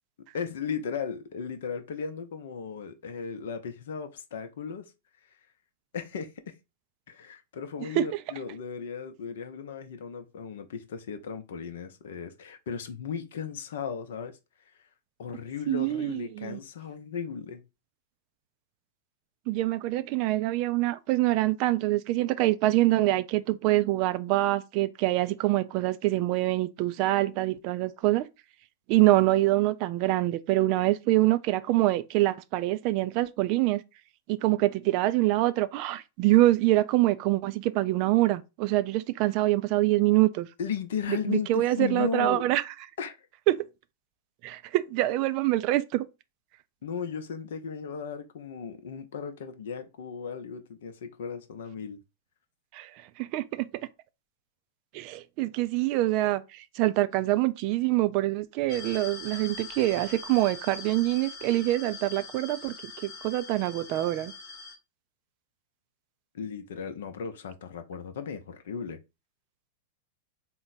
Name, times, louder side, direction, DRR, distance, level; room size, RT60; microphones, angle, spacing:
voice 1, 0.3-4.9 5.9-6.5 7.1-14.4 14.7-14.8 15.2-17.6 40.6-42.4 43.0-43.2 46.8-52.0 66.3-69.0, left 6 dB, 60° left, 0.6 m, -36 dB
voice 2, 15.7-16.6 19.5-28.3 28.9-33.8 34.3-40.5 41.1-42.6 43.5-43.6 44.4-46.1 52.7-52.9 53.2-53.7 54.9-62.8 63.0-64.3, right 17 dB, 45° right, 0.3 m, -25 dB
sound 1, 58.7-64.8, left 4 dB, 35° left, 0.9 m, -42 dB
3.9 x 2.2 x 3.9 m
figure-of-eight pair, 95°, 0 cm